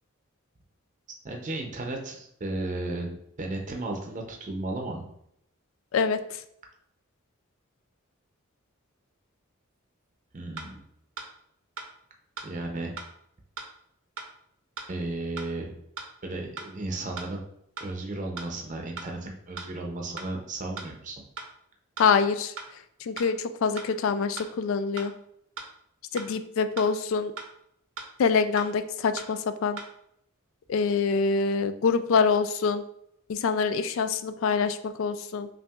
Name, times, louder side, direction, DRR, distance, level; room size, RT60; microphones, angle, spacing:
voice 1, 1.2-5.0 10.3-10.8 12.4-12.9 14.9-15.7 16.2-17.4 17.8-21.2, right 2 dB, 35° right, 1 dB, 0.6 m, -34 dB
sound 1, 10.6-10.7 11.2-11.3 11.8-11.9 12.4-12.5 13.0-13.1 13.6-13.7 14.2-14.3 14.8-14.9 15.4-15.5 16.0-16.1 16.6-16.7 17.2-17.3 17.8-17.9 18.4-18.5 19.0-19.1 19.6-19.7 20.2-20.3 20.8-20.9 21.4-21.5 22.0-22.1 22.6-22.7 23.2-23.3 23.8-23.9 24.4-24.5 25.0-25.1 25.6-25.7 26.2-26.3 26.8-26.9 27.4-27.5 28.0-28.1 28.6-28.7 29.2-29.3 29.8-29.9, right 4 dB, 80° right, 0.7 m, -38 dB
voice 2, 22.0-22.5 23.0-25.1 26.1-27.3 28.2-29.8 30.7-32.8 33.3-35.5, left 5 dB, 65° left, 11 dB, 0.3 m, -25 dB
5.6 x 2.5 x 2.4 m, 0.73 s
head